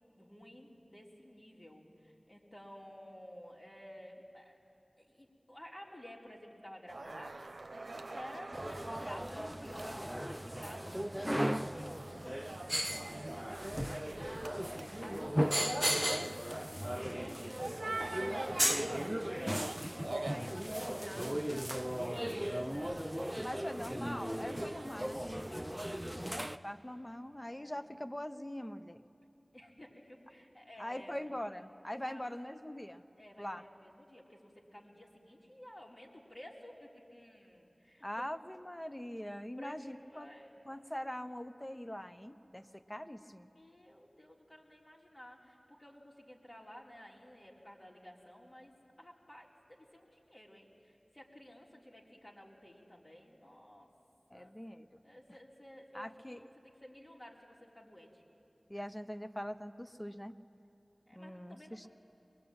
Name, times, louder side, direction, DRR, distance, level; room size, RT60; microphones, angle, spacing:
voice 1, 0.2-4.6 5.0-19.1 20.2-23.7 25.3-26.8 27.4-27.8 29.5-31.3 32.0-32.3 33.2-38.3 39.6-40.6 43.5-53.9 54.3-54.5 55.0-56.5 56.8-58.2 61.1-61.9, equal, 35° left, -3 dB, 3.7 m, -53 dB
sound 1, 6.9-25.1, right 2 dB, 80° right, 0.9 m, -47 dB
sound 2, 8.5-26.6, equal, 10° right, 0.6 m, -36 dB
voice 2, 19.8-20.5 20.9-21.2 23.4-25.3 26.5-29.0 30.8-33.0 33.4-33.7 38.0-40.3 40.6-43.5 54.3-55.0 55.9-56.4 58.7-60.4 61.1-61.9, left 1 dB, 20° left, 10 dB, 0.9 m, -43 dB
23.0 x 21.5 x 8.8 m, 2.7 s
wide cardioid pair, 40°, 0 cm